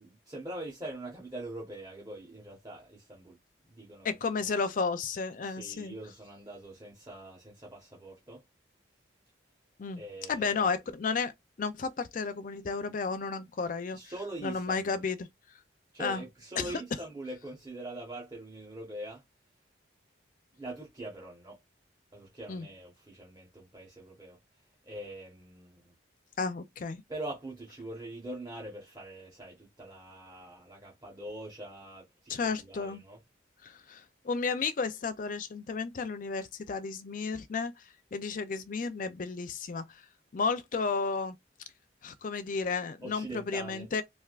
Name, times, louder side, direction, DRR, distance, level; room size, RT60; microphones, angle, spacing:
voice 1, 0.0-3.4 3.7-4.2 5.4-8.4 9.9-10.8 13.9-15.0 15.9-19.2 20.6-21.6 22.1-24.4 24.8-25.9 27.1-33.2 43.0-43.9, right 1 dB, 20° right, 0.9 m, -43 dB
voice 2, 4.0-6.0 9.8-10.0 10.3-11.3 11.6-14.0 14.4-15.3 16.0-16.2 16.6-16.8 22.5-22.7 26.4-27.0 32.3-33.0 33.6-37.8 38.1-40.1 40.3-41.4 42.0-44.0, left 4 dB, 45° left, 0.4 m, -33 dB
3.3 x 2.5 x 2.4 m
head